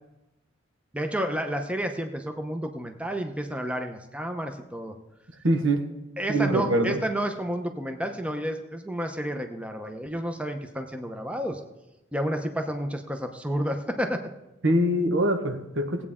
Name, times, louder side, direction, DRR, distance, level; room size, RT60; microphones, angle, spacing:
voice 1, 0.9-4.9 6.2-11.6 12.1-14.2, equal, 5° right, 5 dB, 0.7 m, -30 dB
voice 2, 5.4-5.9 6.3-7.0 14.6-16.0, right 1 dB, 75° right, 6 dB, 1.3 m, -23 dB
18.5 x 8.4 x 3.7 m, 0.96 s
head